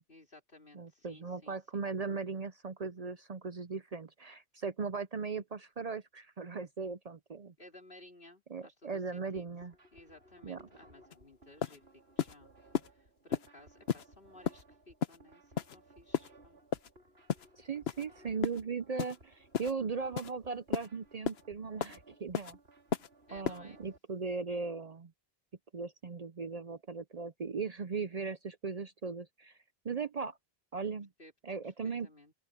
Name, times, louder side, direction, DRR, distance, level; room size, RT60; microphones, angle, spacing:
voice 1, 0.1-1.8 7.6-9.5 9.9-16.6 23.3-23.8 31.2-31.3 31.6-31.7 32.0-32.3, left 2 dB, 60° left, 4.3 m, -57 dB
voice 2, 0.7-7.5 8.5-9.7 10.4-10.6 17.5-22.6 23.3-25.1 25.7-29.6 29.8-30.4 30.7-31.1 31.4-32.1, right 4 dB, 45° right, 0.6 m, -38 dB
sound 1, 9.3-24.0, right 2 dB, 85° right, 5.0 m, -61 dB
sound 2, 11.1-11.2 11.6-11.8 12.2-12.3 12.7-12.9 13.3-13.5 13.9-14.0 14.4-14.6 15.0-15.2 15.6-15.8 16.1-16.3 16.7-16.9 17.3-17.5 17.9-18.0 18.4-18.6 19.0-19.2 19.5-19.7 20.2-20.3 20.7-20.9 21.2-21.4 21.8-22.0 22.3-22.5 22.9-23.1 23.4-23.6, left 7 dB, 80° left, 1.1 m, -33 dB
open air
omnidirectional pair, 1.0 m